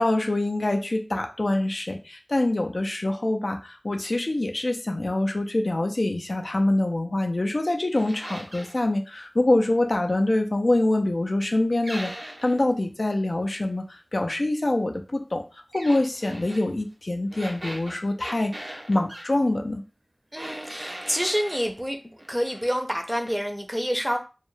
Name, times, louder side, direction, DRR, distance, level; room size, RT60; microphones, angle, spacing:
voice 1, 0.0-15.4 15.7-19.8, left 2 dB, 85° left, 4 dB, 0.3 m, -25 dB
sound 1, 7.9-8.8 11.8-12.6 15.7-16.7 17.3-19.3 20.3-21.7 22.2-22.8 23.1-23.4, right 1 dB, 75° right, 0.6 m, -39 dB
voice 2, 20.3-22.0 22.3-24.2, equal, 5° right, 4 dB, 0.4 m, -27 dB
2.2 x 2.0 x 3.0 m, 0.32 s
wide cardioid pair, 40°, 0 cm